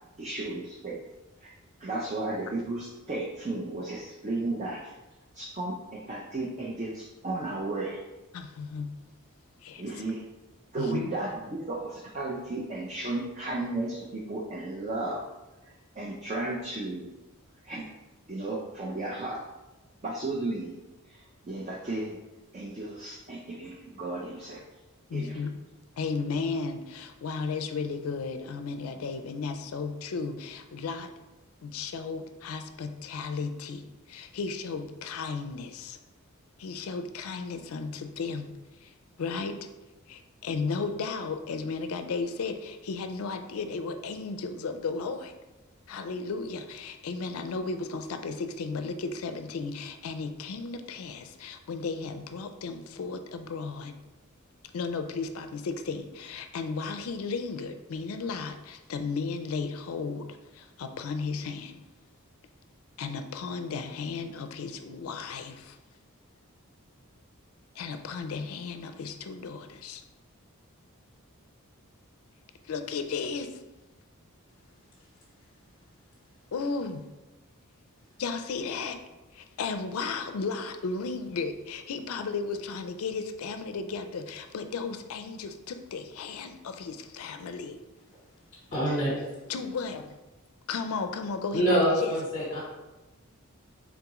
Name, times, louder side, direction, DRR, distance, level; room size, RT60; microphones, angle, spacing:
voice 1, 0.2-1.0 1.4-1.5 1.8-4.9 5.3-8.0 9.8-10.2 10.7-15.3 15.6-17.1 17.6-17.9 18.3-19.4 20.0-20.8 21.1-22.2 22.5-24.6 25.1-25.4, right 2 dB, 30° right, -2 dB, 0.4 m, -34 dB
voice 2, 8.3-8.9 9.6-9.8 10.8-11.1 25.1-25.6 26.0-31.1 31.6-36.0 36.6-38.5 38.8-39.6 40.1-45.3 45.9-53.9 54.7-60.3 60.5-61.8 63.0-65.8 67.8-70.0 72.6-73.6 76.5-77.0 78.2-79.0 79.3-87.8 89.5-90.1 90.7-92.1, left 4 dB, 75° left, 8 dB, 0.4 m, -34 dB
voice 3, 88.7-89.1 91.5-92.6, equal, 35° left, -4 dB, 0.9 m, -25 dB
3.6 x 3.6 x 2.9 m, 1.1 s
head